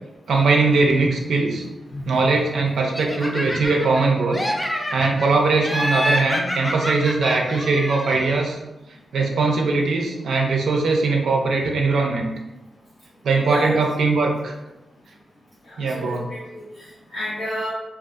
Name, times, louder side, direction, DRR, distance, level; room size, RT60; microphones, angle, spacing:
voice 1, 0.3-1.7 2.1-4.4 4.9-8.6 9.1-12.3 13.2-14.5 15.8-16.3, right 3 dB, 90° right, 1 dB, 0.3 m, -20 dB
voice 2, 1.9-2.3 13.5-13.7 15.7-17.7, equal, 80° left, -9 dB, 0.7 m, -31 dB
Laughter, 2.9-4.0 4.3-5.3 5.6-8.4, equal, 15° left, 0.3 m, -27 dB
2.4 x 2.3 x 2.4 m, 1.0 s
wide cardioid pair, 100°, 0 cm